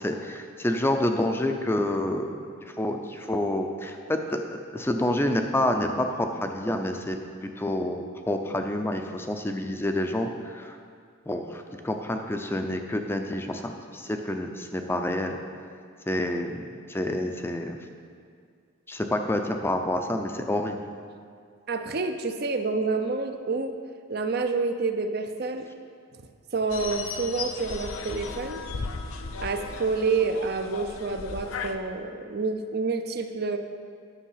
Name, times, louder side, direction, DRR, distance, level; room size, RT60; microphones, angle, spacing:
voice 1, 0.0-2.4 2.7-7.2 7.6-10.7 11.3-15.4 16.1-17.8 18.9-20.7, left 1 dB, 10° left, 5 dB, 0.5 m, -28 dB
voice 2, 21.7-23.7 24.1-25.7 26.5-28.6 29.4-33.6, right 4 dB, 50° right, 7 dB, 0.6 m, -28 dB
sound 1, 26.7-31.7, left 4 dB, 85° left, 0.6 m, -36 dB
10.0 x 6.3 x 5.7 m, 2.2 s
head